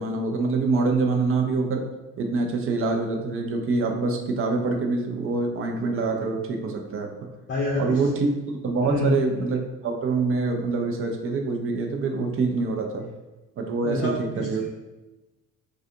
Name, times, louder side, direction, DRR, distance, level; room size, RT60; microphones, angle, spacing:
voice 1, 0.0-1.9 2.2-7.1 7.8-13.1 13.6-14.6, right 3 dB, 35° right, 2 dB, 0.5 m, -25 dB
voice 2, 7.5-8.0 8.9-9.2 13.8-14.5, left 2 dB, 30° left, -4 dB, 0.7 m, -27 dB
2.4 x 2.4 x 2.7 m, 1.1 s
hypercardioid pair, 55°, 41 cm